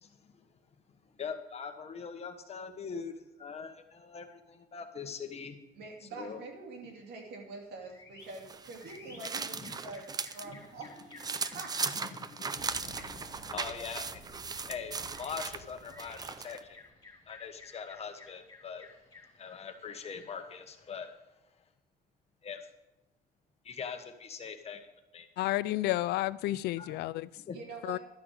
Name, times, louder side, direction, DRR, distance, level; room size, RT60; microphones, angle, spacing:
voice 1, 0.0-0.6 0.9-5.6 6.0-6.4 9.1-9.2 9.6-9.7 10.4-10.9 11.3-11.6 11.9-14.2 14.7-16.8 17.3-18.9 19.3-21.6 22.4-22.7 23.6-25.3 26.8-27.0 27.4-27.6, left 6 dB, 40° left, 6 dB, 1.3 m, -43 dB
voice 2, 5.8-11.1 11.5-11.8 13.0-13.1 27.5-28.0, right 3 dB, 75° right, 1 dB, 2.8 m, -45 dB
sound 1, 7.8-21.1, left 3 dB, 20° left, 3.6 m, -57 dB
sound 2, 8.3-10.5 10.8-16.6, right 5 dB, 25° right, 0.5 m, -38 dB
Boom, 12.6-17.3 17.6-17.7 18.8-18.9, right 1 dB, 55° right, 3.3 m, -54 dB
voice 3, 25.4-27.3 27.8-28.0, left 16 dB, 80° left, 18 dB, 0.4 m, -31 dB
12.0 x 5.8 x 8.0 m, 0.94 s
cardioid pair, 110°, 17 cm